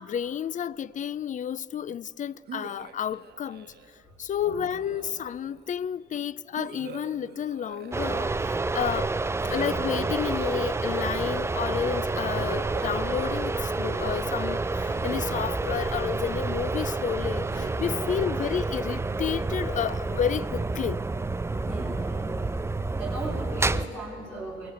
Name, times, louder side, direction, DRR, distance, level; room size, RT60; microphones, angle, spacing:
voice 1, 0.0-3.7 4.2-9.1 9.4-21.0, left 9 dB, 40° left, 0.4 m, -31 dB
sound 1, 2.5-4.0 4.7-5.6 6.5-8.7 9.4-11.2 12.3-14.1 14.9-16.6 17.5-19.4, right 7 dB, 55° right, 1.2 m, -45 dB
voice 2, 4.3-4.6 17.9-18.3 21.6-22.4 23.0-24.7, right 2 dB, 5° left, 3.8 m, -38 dB
sound 2, 7.9-23.9, right 3 dB, 15° right, 0.5 m, -29 dB
21.5 x 19.0 x 8.2 m
cardioid pair, 90°, 20 cm